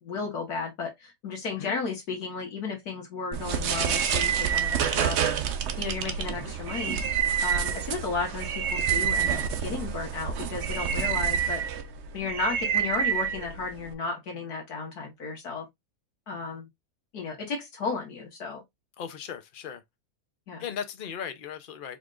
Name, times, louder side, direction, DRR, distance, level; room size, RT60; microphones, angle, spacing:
voice 1, 0.0-5.2 5.8-7.0 7.4-11.6 12.1-15.7 16.3-16.7 17.1-18.6 20.5-20.6, left 4 dB, 75° left, 1.8 m, -34 dB
sound 1, 3.3-13.9, right 8 dB, 60° right, 0.8 m, -28 dB
voice 2, 19.0-19.8 20.6-22.0, left 8 dB, 50° left, 0.7 m, -37 dB
4.6 x 3.6 x 2.5 m
omnidirectional pair, 1.7 m